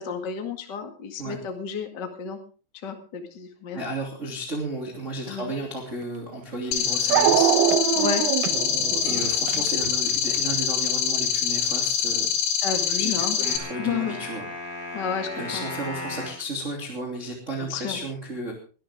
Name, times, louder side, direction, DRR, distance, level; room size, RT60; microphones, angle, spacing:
voice 1, 0.0-2.4 2.8-3.8 5.3-5.5 7.9-8.2 12.6-13.4 13.8-14.2 14.9-15.6 17.6-18.0, left 6 dB, 55° left, 5 dB, 1.1 m, -31 dB
voice 2, 3.7-7.5 9.0-12.3 12.9-14.4 15.3-18.5, right 1 dB, 20° right, 0 dB, 2.4 m, -33 dB
Dog, 6.0-6.1 7.1-10.5, right 11 dB, 85° right, 3.6 m, -23 dB
sound 1, 6.7-13.6, left 8 dB, 75° left, 4.0 m, -25 dB
sound 2, 13.4-16.4, left 2 dB, 20° left, 4.5 m, -36 dB
21.5 x 13.5 x 3.7 m, 0.37 s
omnidirectional pair, 5.6 m